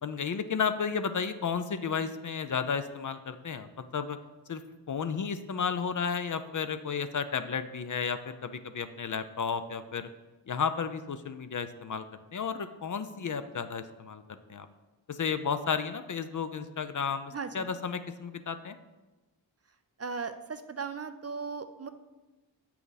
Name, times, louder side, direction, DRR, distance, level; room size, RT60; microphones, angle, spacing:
voice 1, 0.0-4.2 4.5-4.6 4.9-10.1 10.5-12.0 12.3-14.2 14.5-14.7 15.1-18.8, left 6 dB, 45° left, 10 dB, 0.6 m, -33 dB
voice 2, 17.3-17.7 20.0-21.9, right 5 dB, 35° right, 9 dB, 0.5 m, -37 dB
7.4 x 5.8 x 4.1 m, 1.1 s
cardioid pair, 55°, 45 cm